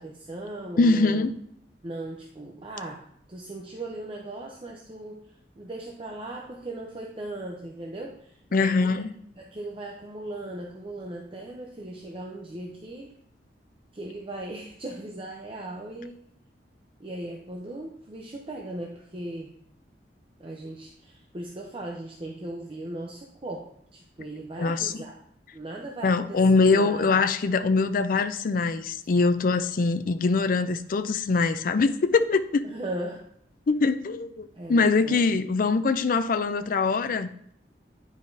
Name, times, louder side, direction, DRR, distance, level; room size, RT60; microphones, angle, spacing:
voice 1, 0.0-1.2 1.8-5.2 5.6-9.0 9.4-13.1 13.9-16.2 17.0-19.5 20.4-25.2 25.5-27.1 32.6-33.2 34.5-35.4, right 1 dB, 30° right, 0 dB, 0.7 m, -38 dB
voice 2, 0.8-1.3 8.5-9.1 24.6-24.9 26.0-32.6 33.7-37.5, left 4 dB, 50° left, 11 dB, 0.4 m, -23 dB
9.7 x 4.8 x 2.7 m, 0.70 s
head